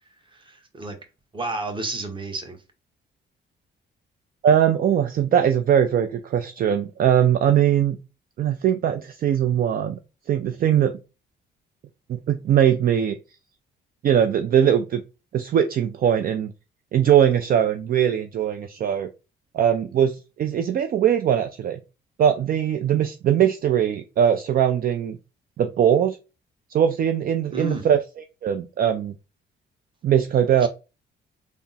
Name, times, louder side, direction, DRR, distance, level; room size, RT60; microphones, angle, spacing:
voice 1, 0.3-1.0 1.3-2.6 27.5-27.8 30.6-30.7, right 2 dB, 25° right, 5 dB, 1.0 m, -31 dB
voice 2, 4.4-8.0 8.4-10.0 10.3-10.9 12.1-13.2 14.0-15.0 15.3-16.5 16.9-19.1 19.5-21.8 22.2-25.2 25.6-26.2 26.7-28.0 28.4-29.1 30.0-30.7, right 9 dB, 45° right, 8 dB, 0.4 m, -20 dB
3.4 x 2.0 x 4.0 m, 0.30 s
cardioid pair, 90°, 20 cm